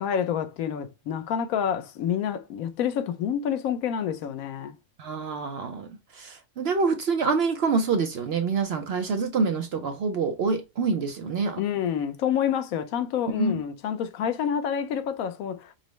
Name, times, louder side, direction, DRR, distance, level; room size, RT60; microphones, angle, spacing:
voice 1, 0.0-4.7 11.6-15.7, left 8 dB, 85° left, 1.1 m, -28 dB
voice 2, 5.0-11.6 13.4-13.6, right 4 dB, 65° right, 0.6 m, -26 dB
5.2 x 2.0 x 3.1 m
omnidirectional pair, 1.5 m